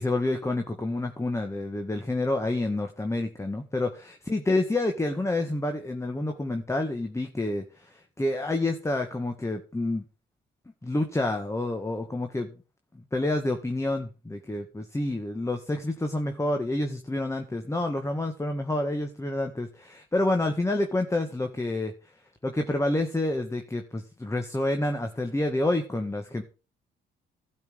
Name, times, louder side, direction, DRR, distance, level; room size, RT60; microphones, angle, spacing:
voice 1, 0.0-10.0 10.8-12.5 12.9-21.9 22.4-26.4, left 2 dB, 15° left, 5 dB, 1.8 m, -28 dB
12.0 x 5.7 x 8.9 m, 0.35 s
cardioid pair, 90°, 20 cm